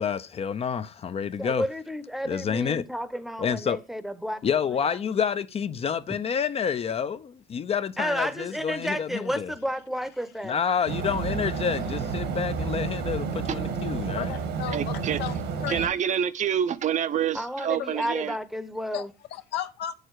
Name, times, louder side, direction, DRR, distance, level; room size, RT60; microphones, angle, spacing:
voice 1, 0.0-1.6 2.3-2.8 3.4-3.8 4.4-9.5 10.4-14.3, left 7 dB, 35° left, 0.6 m, -28 dB
voice 2, 1.4-4.4 8.0-10.6 17.3-19.1, equal, ahead, 0.8 m, -31 dB
sound 1, 10.9-15.9, right 5 dB, 85° right, 1.8 m, -30 dB
voice 3, 14.1-15.4 15.6-15.9 17.8-18.1 18.9-19.9, left 10 dB, 80° left, 1.0 m, -35 dB
voice 4, 14.7-15.2 15.7-18.3, right 9 dB, 45° right, 0.6 m, -27 dB
7.7 x 6.5 x 4.7 m
cardioid pair, 110°, 17 cm